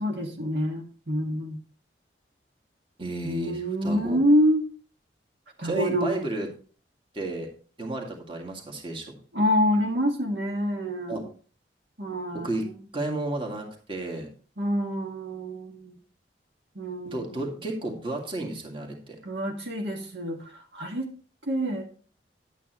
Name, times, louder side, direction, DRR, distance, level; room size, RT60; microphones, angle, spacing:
voice 1, 0.0-1.6 3.2-4.6 5.6-6.2 9.3-11.3 12.0-12.7 14.6-16.0 16.8-17.6 19.2-21.1 21.5-21.9, equal, 70° right, 1 dB, 1.8 m, -27 dB
voice 2, 3.0-4.2 5.6-6.5 7.1-7.5 7.8-9.2 11.1-11.2 12.4-12.7 12.9-14.3 17.0-19.2, right 2 dB, 30° right, 1 dB, 2.1 m, -32 dB
10.5 x 9.2 x 3.0 m, 0.40 s
head